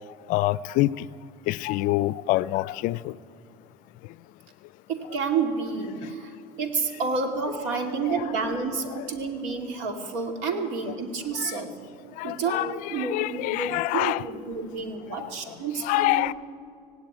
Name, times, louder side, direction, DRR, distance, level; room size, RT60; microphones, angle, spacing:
voice 1, 0.3-1.1 1.5-3.1 8.1-8.3 8.9-9.1 11.4-11.5 12.2-14.2 15.2-15.3 15.8-16.3, left 18 dB, 60° left, 0.4 m, -26 dB
voice 2, 4.9-11.7 12.2-16.3, right 4 dB, 85° right, 2.5 m, -30 dB
17.5 x 17.0 x 9.2 m
cardioid pair, 140°, 16 cm